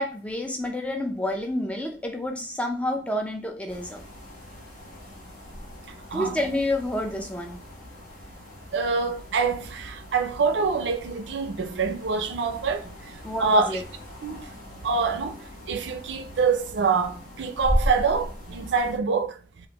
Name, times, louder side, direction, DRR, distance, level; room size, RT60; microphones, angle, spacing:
voice 1, 0.0-4.0 6.1-7.6 13.2-13.8, left 1 dB, 5° left, 0.4 m, -29 dB
sound 1, 3.7-19.0, equal, 45° left, 1.0 m, -37 dB
voice 2, 8.7-12.9 13.4-13.8 14.2-14.4 14.8-15.4 15.7-19.4, right 4 dB, 80° right, 0.4 m, -25 dB
3.2 x 2.5 x 2.9 m
head